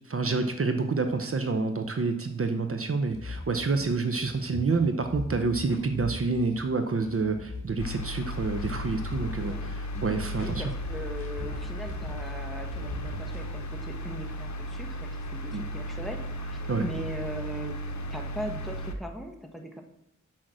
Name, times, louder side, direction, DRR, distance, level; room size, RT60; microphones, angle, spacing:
voice 1, 0.1-10.6 15.5-15.6 16.7-16.8, right 4 dB, 45° right, 7 dB, 0.7 m, -28 dB
sound 1, 3.1-9.6 9.9-12.4 12.7-13.8, left 2 dB, 45° left, 2.0 m, -41 dB
sound 2, 7.8-18.9, equal, 65° left, 1.0 m, -35 dB
voice 2, 9.4-9.7 10.4-16.2 16.4-17.7 18.1-19.8, equal, ahead, 3 dB, 1.2 m, -39 dB
6.4 x 5.9 x 6.2 m, 0.79 s
wide cardioid pair, 75°, 30 cm